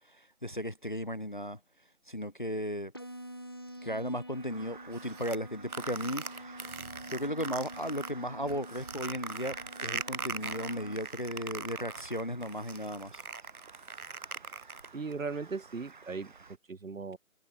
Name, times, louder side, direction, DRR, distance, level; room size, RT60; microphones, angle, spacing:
voice 1, 0.0-1.6 2.1-2.9 3.8-6.6 7.1-9.6 9.8-13.2, equal, 35° left, 0.6 m, -36 dB
sound 1, 2.9-10.9, equal, 15° left, 0.9 m, -47 dB
Crow, 4.3-16.6, right 5 dB, 35° right, 2.2 m, -53 dB
sound 2, 4.9-8.1 8.5-15.1, right 4 dB, 80° right, 2.1 m, -40 dB
voice 2, 14.9-16.3 16.7-17.2, right 4 dB, 65° right, 2.5 m, -37 dB
figure-of-eight pair, 175°, 43 cm